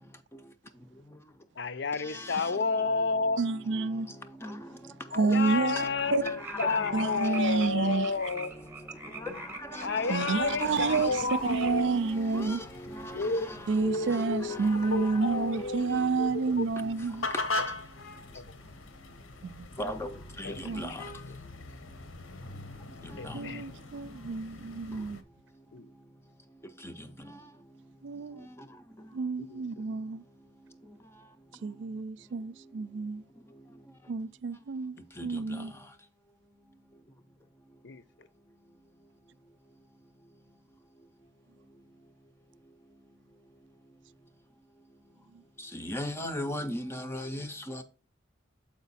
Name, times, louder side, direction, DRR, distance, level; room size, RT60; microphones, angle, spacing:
voice 1, 1.6-3.4 5.1-8.5 9.8-11.9 13.1-13.5 13.8-14.6 14.9-16.7 18.3-18.5 20.4-21.1 23.2-23.7 25.7-25.9 29.4-29.6 37.8-38.0, left 4 dB, 60° left, 0.6 m, -31 dB
voice 2, 3.4-4.2 5.2-5.8 6.1-6.2 6.9-8.1 9.8-12.7 13.7-17.3 19.4-19.7 20.6-20.9 23.3-25.2 28.0-28.5 29.1-30.2 31.6-33.2 34.1-35.7 45.3-45.4, right 4 dB, 65° right, 0.3 m, -29 dB
sound 1, 5.8-11.8, right 3 dB, 10° right, 0.8 m, -44 dB
sound 2, 10.3-25.2, left 2 dB, 85° left, 0.9 m, -42 dB
voice 3, 45.8-47.5, equal, 15° left, 0.5 m, -34 dB
7.1 x 5.0 x 4.0 m
head